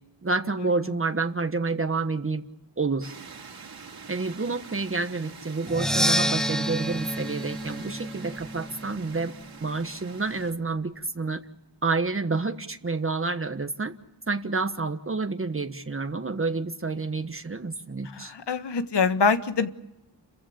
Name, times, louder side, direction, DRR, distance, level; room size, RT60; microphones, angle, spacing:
voice 1, 0.2-2.4 2.8-3.2 4.1-9.3 9.6-11.4 11.8-13.9 14.3-18.3, right 3 dB, 30° right, 8 dB, 1.4 m, -29 dB
sound 1, 3.0-10.5, right 5 dB, 60° right, 2.8 m, -45 dB
Percussion, 5.7-9.5, equal, ahead, 0.9 m, -28 dB
voice 2, 18.1-19.7, left 5 dB, 75° left, 10 dB, 1.6 m, -24 dB
30.0 x 15.5 x 8.7 m, 0.94 s
wide cardioid pair, 80°, 42 cm